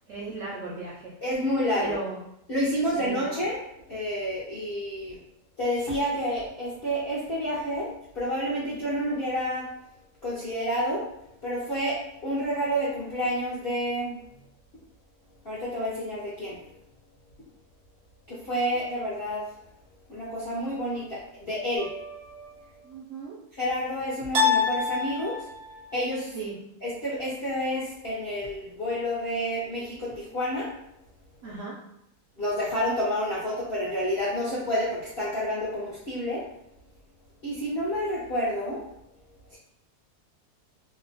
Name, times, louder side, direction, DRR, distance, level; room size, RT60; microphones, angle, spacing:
voice 1, 0.1-1.1 1.8-2.2 2.9-3.2 22.8-23.4 26.3-26.6 31.4-31.8, right 3 dB, 70° right, -5 dB, 0.8 m, -36 dB
voice 2, 1.2-2.0 2.5-3.6 3.9-5.2 5.6-7.9 8.1-9.7 10.2-11.0 11.4-14.2 15.4-16.6 18.3-19.4 20.1-21.9 23.5-25.5 25.9-26.4 26.8-30.7 32.4-36.4 37.4-38.8 39.5-39.6, equal, 55° left, -9 dB, 0.6 m, -29 dB
sound 1, 21.8-22.5 24.3-25.8, left 5 dB, 85° right, 1.2 m, -27 dB
2.8 x 2.1 x 2.6 m, 0.81 s
omnidirectional pair, 1.7 m